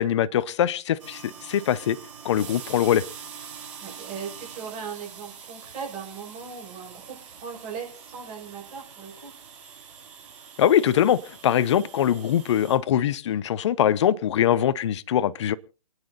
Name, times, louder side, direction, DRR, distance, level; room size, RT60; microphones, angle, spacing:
voice 1, 0.0-2.0 2.2-3.0 10.6-15.5, left 10 dB, 45° left, 0.7 m, -22 dB
sound 1, 1.0-12.8, right 7 dB, 50° right, 4.8 m, -44 dB
voice 2, 3.8-9.3, right 6 dB, 25° right, 5.5 m, -38 dB
28.5 x 9.8 x 2.6 m
hypercardioid pair, 145°, 20 cm